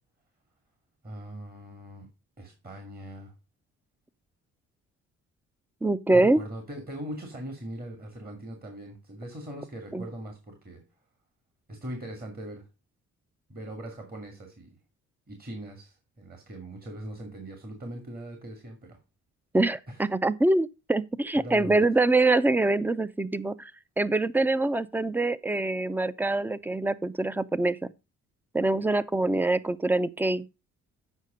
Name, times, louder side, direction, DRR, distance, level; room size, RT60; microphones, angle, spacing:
voice 1, 1.0-2.1 2.4-3.3 6.1-10.8 11.7-12.6 13.5-14.7 15.3-19.0 19.9-20.0 21.3-21.8, right 1 dB, 30° right, 2.3 m, -40 dB
voice 2, 5.8-6.4 9.9-10.1 19.5-23.7 24.0-27.8 28.5-30.5, right 2 dB, 5° right, 0.5 m, -24 dB
8.2 x 5.7 x 5.0 m
cardioid pair, 90°, 30 cm